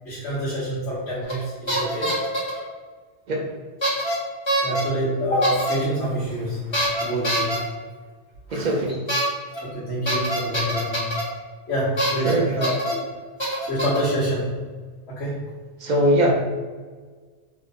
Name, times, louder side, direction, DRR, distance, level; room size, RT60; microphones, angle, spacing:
voice 1, 0.0-2.2 4.6-7.6 8.5-8.8 9.6-11.1 11.7-13.1 13.7-14.6 15.1-15.4, equal, 80° left, -9 dB, 1.2 m, -27 dB
sound 1, 1.3-1.4 1.7-2.6 3.8-4.1 4.5-4.8 5.4-5.7 6.7-7.6 9.1-9.2 9.5-9.6 10.1-11.2 12.0-12.3 12.6-12.9 13.4-14.1, right 1 dB, 25° left, 0.9 m, -24 dB
voice 2, 8.5-9.0 12.2-12.5 15.8-16.3, right 1 dB, 55° right, 0 dB, 0.5 m, -20 dB
2.9 x 2.1 x 3.8 m, 1.5 s
omnidirectional pair, 1.2 m